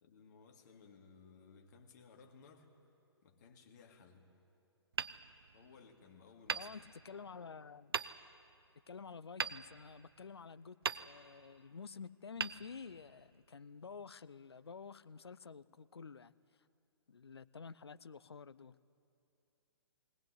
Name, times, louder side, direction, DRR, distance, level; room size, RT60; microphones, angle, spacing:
voice 1, 0.0-2.7 3.2-4.3 5.5-6.7, left 5 dB, 45° left, 3 dB, 2.5 m, -60 dB
Hammer, 4.9-6.0 6.5-7.4 7.9-8.5 9.4-10.4 10.8-11.6 12.4-13.3, right 6 dB, 60° right, 0.6 m, -41 dB
voice 2, 6.5-7.9 8.9-16.3 17.1-18.8, left 5 dB, 70° left, 17 dB, 0.6 m, -50 dB
20.0 x 18.0 x 9.9 m, 2.7 s
figure-of-eight pair, 120°, 14 cm